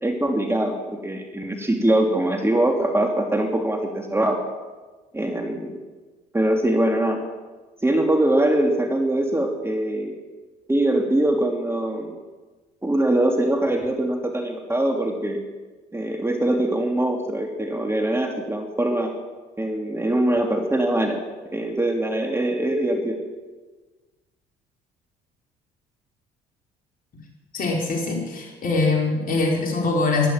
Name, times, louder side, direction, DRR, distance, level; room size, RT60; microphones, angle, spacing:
voice 1, 0.0-4.4 5.1-5.8 6.3-7.2 7.8-10.1 10.7-12.1 12.8-15.4 15.9-19.1 19.6-21.2 21.5-23.2, right 1 dB, 15° right, 3 dB, 2.8 m, -22 dB
voice 2, 27.5-30.3, left 3 dB, 55° left, 0 dB, 5.0 m, -23 dB
13.5 x 12.0 x 8.9 m, 1.3 s
hypercardioid pair, 65°, 18 cm